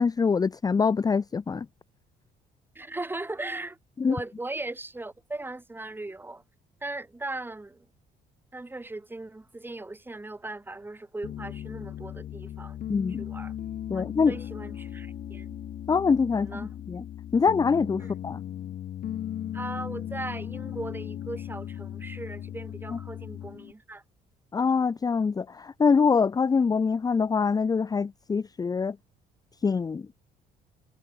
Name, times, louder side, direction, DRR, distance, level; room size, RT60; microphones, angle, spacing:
voice 1, 0.0-1.7 4.0-4.2 12.9-13.2 13.9-14.4 15.9-17.0 17.3-18.4 22.9-23.0 24.5-29.0 29.6-30.1, left 5 dB, 20° left, 0.7 m, -24 dB
voice 2, 2.8-3.8 4.1-6.4 6.8-7.9 8.5-12.8 13.2-13.6 13.9-15.6 16.3-16.7 18.0-18.1 19.5-24.0, right 2 dB, 10° right, 3.4 m, -38 dB
Piano, 11.2-23.7, left 11 dB, 60° left, 5.9 m, -37 dB
cardioid pair, 110°, 17 cm